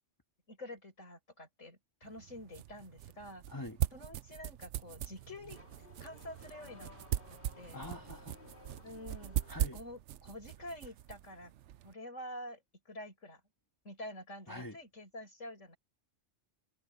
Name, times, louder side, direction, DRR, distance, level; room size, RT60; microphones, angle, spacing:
voice 1, 0.5-3.4 3.9-5.6 6.0-6.9 7.6-7.8 8.8-9.4 9.7-11.5 11.8-13.4 13.8-15.8, left 1 dB, 85° left, 8.0 m, -48 dB
sound 1, 2.0-11.9, right 12 dB, 75° right, 0.9 m, -40 dB
Car / Accelerating revving vroom, 4.8-9.8, left 3 dB, 45° left, 4.7 m, -57 dB
voice 2, 7.7-8.7 9.5-9.8 14.5-14.8, left 2 dB, 15° left, 1.7 m, -45 dB
omnidirectional pair, 1.3 m